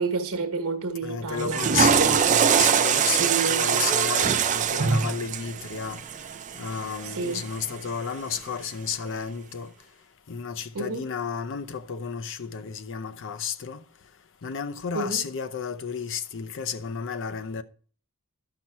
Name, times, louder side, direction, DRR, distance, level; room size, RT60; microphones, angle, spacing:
voice 1, 0.0-2.2 3.2-3.7 7.0-7.4 10.7-11.1 14.9-15.2, right 4 dB, 70° right, 1.2 m, -30 dB
voice 2, 1.0-6.0 6.6-9.7 10.3-13.8 14.4-17.6, left 6 dB, 60° left, 0.6 m, -32 dB
Water / Toilet flush, 1.3-7.6, right 7 dB, 35° right, 0.4 m, -23 dB
12.0 x 5.8 x 4.5 m
head